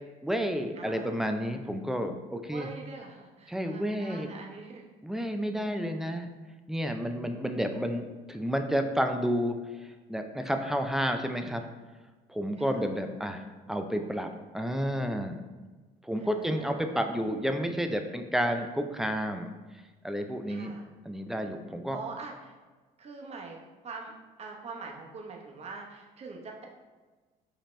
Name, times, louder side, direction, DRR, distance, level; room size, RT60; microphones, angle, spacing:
voice 1, 0.2-2.7 3.5-4.3 5.0-6.3 6.7-9.6 10.1-11.7 12.3-15.4 16.0-19.5 20.0-20.7 21.1-22.0, equal, ahead, 6 dB, 0.3 m, -30 dB
voice 2, 0.8-1.2 2.5-4.9 12.6-13.0 16.2-17.0 20.5-20.9 21.9-22.5 23.0-23.6 23.8-24.1 24.4-26.7, right 4 dB, 40° right, 0 dB, 0.8 m, -44 dB
5.0 x 2.8 x 3.2 m, 1.3 s
cardioid pair, 110°, 17 cm